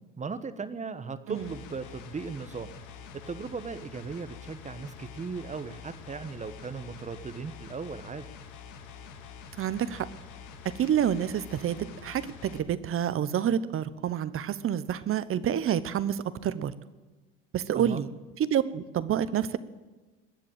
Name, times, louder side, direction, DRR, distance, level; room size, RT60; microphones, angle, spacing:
voice 1, 0.2-2.7 3.1-8.2 17.7-18.0, right 5 dB, 20° right, 12 dB, 1.2 m, -37 dB
sound 1, 1.3-12.6, left 6 dB, 65° left, 2.0 m, -46 dB
voice 2, 9.6-10.1 10.6-16.7 17.5-18.1 18.4-19.6, right 9 dB, 45° right, 15 dB, 1.0 m, -28 dB
21.0 x 7.6 x 9.0 m, 1.2 s
supercardioid pair, 90°, 31 cm